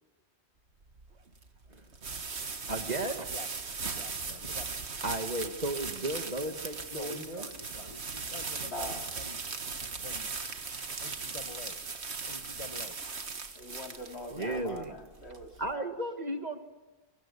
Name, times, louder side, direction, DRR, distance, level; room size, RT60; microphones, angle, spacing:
sound 1, 0.8-15.7, right 4 dB, 75° right, 1.9 m, -38 dB
voice 1, 2.7-3.3 5.0-7.5 14.3-14.9 15.6-16.6, right 1 dB, 40° right, 7 dB, 1.8 m, -34 dB
voice 2, 3.9-4.7 6.9-9.4 9.9-10.3 11.0-11.8 12.3-13.0 14.3-15.0, left 4 dB, 30° left, 8 dB, 1.6 m, -47 dB
voice 3, 8.6-9.1 13.5-15.9, left 1 dB, 75° left, 3 dB, 3.2 m, -43 dB
23.0 x 23.0 x 9.8 m, 1.2 s
omnidirectional pair, 1.1 m